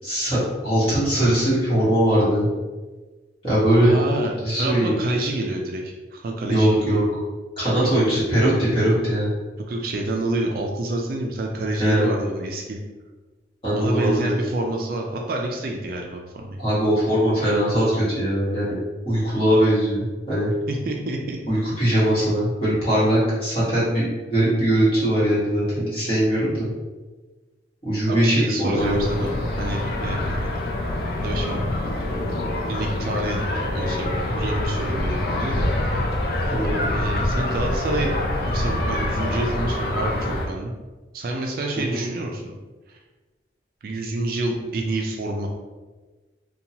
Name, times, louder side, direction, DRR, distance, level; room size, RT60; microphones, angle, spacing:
voice 1, 0.0-2.5 3.4-3.9 4.4-5.0 6.5-7.0 7.6-9.3 11.8-12.1 13.6-14.3 16.6-18.8 19.1-20.5 21.5-26.7 27.8-29.0 36.5-36.8 41.9-42.0, right 1 dB, 30° left, -11 dB, 1.3 m, -21 dB
voice 2, 3.8-4.3 4.6-7.0 7.8-7.9 9.6-12.8 13.7-16.6 20.7-21.4 28.1-29.3 29.6-30.5 31.2-31.6 32.7-33.4 33.7-36.1 36.6-38.1 38.4-40.7 41.1-42.6 42.9-43.0 43.8-45.5, right 2 dB, 50° right, 1 dB, 0.3 m, -28 dB
sound 1, 28.8-40.5, left 1 dB, 55° left, 0.4 m, -25 dB
2.7 x 2.2 x 2.8 m, 1.3 s
head